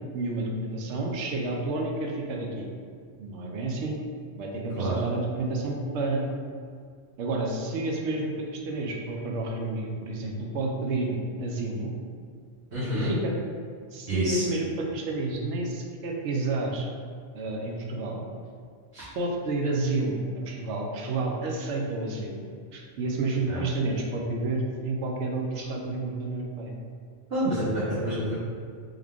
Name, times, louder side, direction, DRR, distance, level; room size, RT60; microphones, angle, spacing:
voice 1, 0.1-2.7 3.2-3.9 4.4-6.2 7.2-11.9 12.9-13.3 13.9-16.9 17.3-18.2 19.1-22.4 22.7-26.7, right 2 dB, 75° right, 0 dB, 0.9 m, -30 dB
voice 2, 12.7-13.1 14.1-14.4 18.9-19.0 23.5-23.6 27.3-28.3, right 1 dB, 60° right, -13 dB, 1.4 m, -28 dB
3.7 x 3.1 x 3.5 m, 2.1 s
omnidirectional pair, 1.2 m